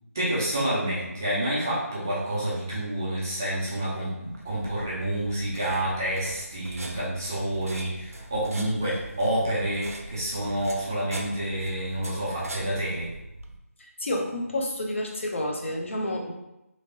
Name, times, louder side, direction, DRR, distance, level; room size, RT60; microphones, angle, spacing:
voice 1, 0.1-13.1, right 1 dB, 10° right, -8 dB, 0.4 m, -28 dB
sound 1, 4.3-13.6, right 1 dB, 65° right, 0.5 m, -41 dB
voice 2, 13.8-16.3, left 1 dB, 55° left, 0 dB, 0.7 m, -30 dB
3.2 x 2.8 x 2.7 m, 0.90 s
figure-of-eight pair, 170°, 8 cm